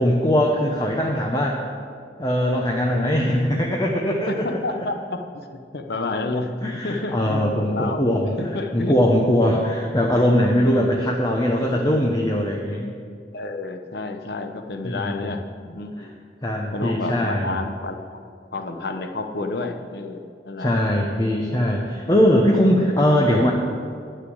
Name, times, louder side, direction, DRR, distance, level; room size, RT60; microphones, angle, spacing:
voice 1, 0.0-1.6 2.2-4.4 6.6-8.4 8.7-12.9 14.8-15.4 16.4-17.6 20.6-23.5, equal, 25° left, -1 dB, 0.9 m, -21 dB
voice 2, 4.3-9.0 13.3-16.1 16.7-18.2 18.5-20.7, left 2 dB, 60° left, 5 dB, 0.9 m, -30 dB
10.0 x 6.6 x 7.8 m, 2.2 s
head